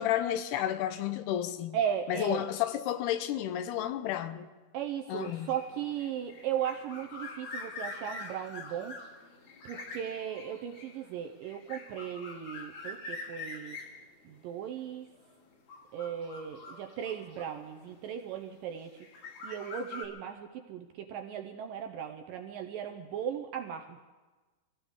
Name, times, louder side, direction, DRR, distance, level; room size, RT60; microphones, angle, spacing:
voice 1, 0.0-1.8 2.1-4.5 5.1-5.5, left 11 dB, 80° left, 2.7 m, -31 dB
voice 2, 1.7-2.5 4.7-9.0 9.7-13.8 14.3-15.1 15.9-19.0 19.4-24.0, right 9 dB, 75° right, 2.1 m, -37 dB
sound 1, 5.2-18.1 18.8-20.0, left 3 dB, 60° left, 3.6 m, -45 dB
25.0 x 16.0 x 3.6 m
omnidirectional pair, 4.6 m